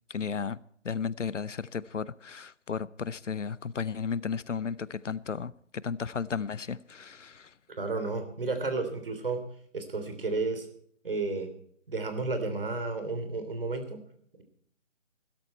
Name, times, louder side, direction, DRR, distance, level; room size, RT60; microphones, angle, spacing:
voice 1, 0.1-0.6 0.8-5.5 5.8-7.5, left 6 dB, 75° left, 0.8 m, -34 dB
voice 2, 7.8-9.4 9.7-10.7 11.0-11.5 11.9-14.0, right 3 dB, 45° right, 3.4 m, -32 dB
16.0 x 13.0 x 4.3 m
figure-of-eight pair, 170°, 37 cm